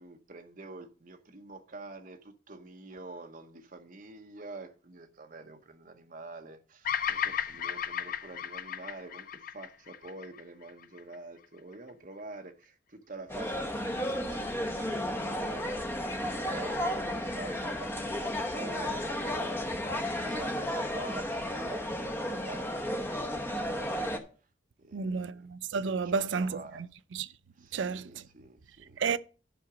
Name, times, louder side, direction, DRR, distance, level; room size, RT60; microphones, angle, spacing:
voice 1, 0.0-15.9 16.3-19.6 20.1-24.1 24.8-25.5 26.0-26.8 27.6-29.0, right 2 dB, 45° right, 0.9 m, -46 dB
Bird vocalization bird call bird song, 6.8-11.1, left 8 dB, 45° left, 0.6 m, -34 dB
sound 1, 13.3-24.2, left 1 dB, 10° left, 0.9 m, -33 dB
voice 2, 24.9-26.9 27.1-27.3 27.7-28.0 29.0-29.2, right 5 dB, 75° right, 0.4 m, -31 dB
10.5 x 5.8 x 4.9 m
head